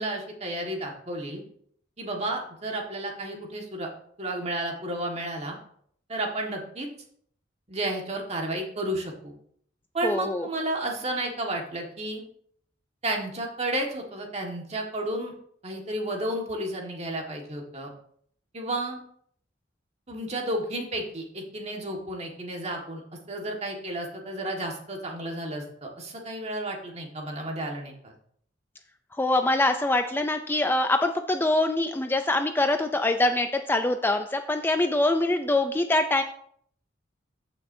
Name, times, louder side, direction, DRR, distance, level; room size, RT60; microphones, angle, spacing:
voice 1, 0.0-1.4 2.0-3.9 4.2-5.6 6.1-6.9 7.7-9.3 9.9-12.2 13.0-15.3 15.6-17.9 18.5-19.0 20.1-23.0 23.3-28.1, right 1 dB, 35° right, 1 dB, 1.6 m, -32 dB
voice 2, 10.0-10.5 29.2-36.2, left 2 dB, 10° left, 6 dB, 0.4 m, -24 dB
14.0 x 6.0 x 2.7 m, 0.64 s
head